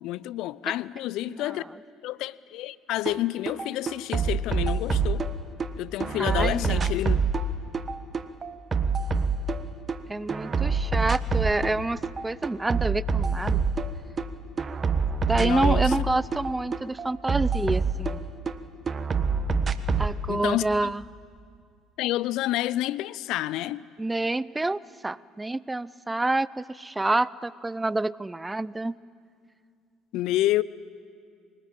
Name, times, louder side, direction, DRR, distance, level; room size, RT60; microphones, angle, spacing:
voice 1, 0.0-1.7 2.0-5.2 5.8-7.2 15.4-15.9 20.3-20.9 22.0-23.8 30.1-30.6, left 15 dB, 65° left, 0.5 m, -29 dB
voice 2, 1.3-1.6 6.2-6.9 10.1-13.6 15.3-18.2 20.0-21.0 24.0-29.0, right 2 dB, 15° right, 0.6 m, -28 dB
sound 1, 3.1-3.2 3.5-5.7 6.0-10.0 10.3-11.8 12.0-14.3 14.6-18.6 18.9-20.2, right 5 dB, 35° right, 1.3 m, -26 dB
23.5 x 21.0 x 8.9 m
hypercardioid pair, 60°, 0 cm